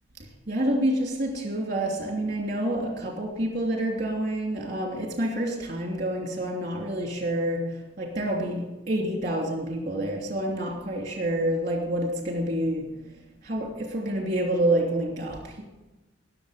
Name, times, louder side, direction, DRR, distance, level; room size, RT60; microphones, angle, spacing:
voice 1, 0.5-7.6 8.0-12.8 13.4-15.6, right 1 dB, 35° right, 0 dB, 2.9 m, -28 dB
20.0 x 7.0 x 5.1 m, 1.1 s
head